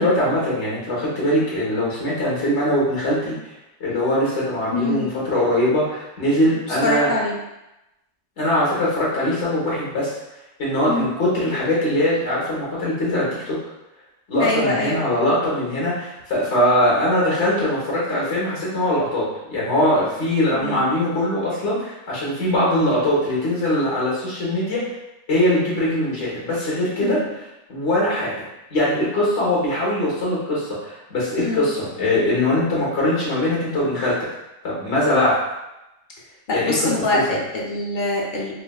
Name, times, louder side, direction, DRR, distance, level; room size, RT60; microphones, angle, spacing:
voice 1, 0.0-3.3 3.8-7.1 8.4-10.2 10.6-13.6 14.3-24.9 25.3-27.2 27.7-28.3 28.7-34.1 34.6-35.4 36.5-37.2, left 1 dB, 75° left, -6 dB, 1.5 m, -21 dB
voice 2, 4.7-5.1 6.8-7.4 10.9-11.1 14.4-15.0 20.5-20.8 27.0-27.3 31.4-31.7 36.5-38.6, left 2 dB, 50° left, -4 dB, 0.9 m, -24 dB
4.8 x 2.1 x 2.3 m, 0.93 s
omnidirectional pair, 1.2 m